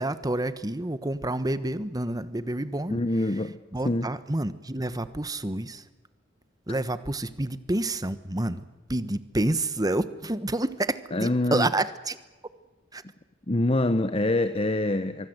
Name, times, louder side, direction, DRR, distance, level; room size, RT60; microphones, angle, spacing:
voice 1, 0.0-3.0 3.7-5.8 6.7-8.6 8.9-12.2 12.9-13.0, right 1 dB, 20° right, 14 dB, 1.3 m, -28 dB
voice 2, 2.9-3.6 3.8-4.1 11.1-11.7 13.5-15.3, left 1 dB, 30° left, 11 dB, 1.0 m, -25 dB
25.0 x 24.0 x 8.1 m, 1.2 s
head